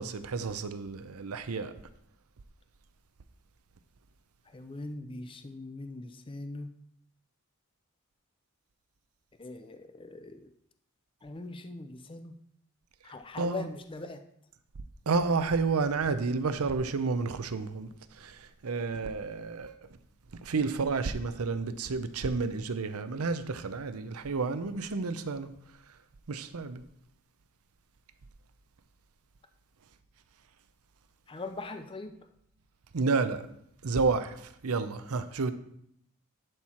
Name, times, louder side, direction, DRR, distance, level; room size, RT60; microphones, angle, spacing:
voice 1, 0.0-1.7 13.4-13.7 15.1-17.9 18.2-18.3 18.6-19.8 20.5-25.5 26.3-26.8 32.9-33.4 33.8-34.4 34.6-35.5, right 4 dB, 85° right, 0.6 m, -30 dB
voice 2, 4.5-6.7 9.4-10.5 11.2-12.3 13.0-14.2 31.3-32.2, left 2 dB, 25° left, 0.5 m, -41 dB
11.0 x 4.6 x 4.4 m
head